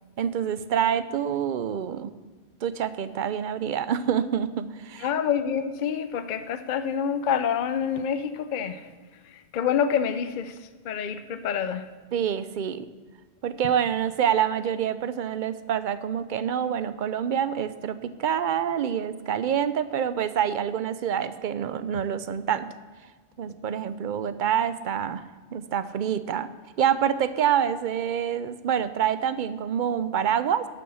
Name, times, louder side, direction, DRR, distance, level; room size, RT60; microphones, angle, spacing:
voice 1, 0.2-2.1 2.6-5.1 12.1-12.9 13.4-22.7 23.4-25.3 25.5-26.5 26.8-30.7, right 9 dB, 55° right, 13 dB, 0.6 m, -26 dB
voice 2, 5.0-8.9 9.5-10.5 10.8-11.9, left 8 dB, 55° left, 10 dB, 0.7 m, -27 dB
11.5 x 6.9 x 6.2 m, 1.4 s
omnidirectional pair, 1.1 m